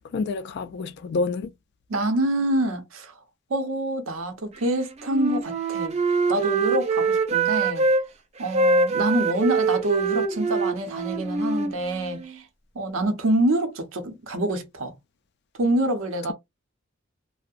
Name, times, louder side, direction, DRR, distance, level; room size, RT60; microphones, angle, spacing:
voice 1, 0.1-1.5, left 3 dB, 55° left, 0.3 m, -28 dB
voice 2, 1.9-3.1 3.5-7.9 8.4-12.5 12.7-14.9 15.6-16.3, right 1 dB, 85° right, 0.7 m, -26 dB
Wind instrument woodwind instrument, 5.1-8.0 8.5-12.4, right 4 dB, 35° right, 0.3 m, -24 dB
2.6 x 2.0 x 2.3 m
head